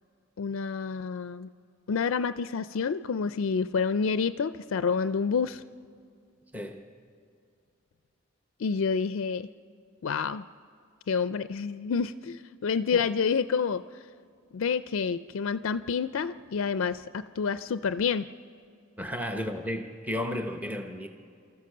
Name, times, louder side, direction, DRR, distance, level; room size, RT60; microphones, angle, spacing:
voice 1, 0.4-1.5 1.9-5.6 8.6-9.5 10.0-10.4 11.1-13.8 14.5-18.3, left 5 dB, 65° left, 0.4 m, -28 dB
voice 2, 6.5-6.9 12.9-13.0 19.0-21.1, left 1 dB, 10° right, 0.9 m, -33 dB
29.5 x 14.0 x 6.7 m
head